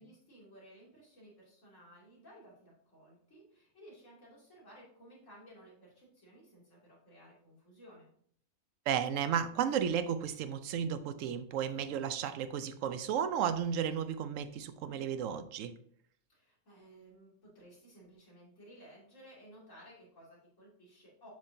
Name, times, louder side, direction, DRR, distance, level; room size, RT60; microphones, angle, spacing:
voice 1, 0.0-8.1 16.3-21.3, equal, 65° left, -5 dB, 2.9 m, -57 dB
voice 2, 8.9-15.7, right 8 dB, 75° right, 10 dB, 0.9 m, -33 dB
7.4 x 5.9 x 2.6 m, 0.64 s
omnidirectional pair, 1.4 m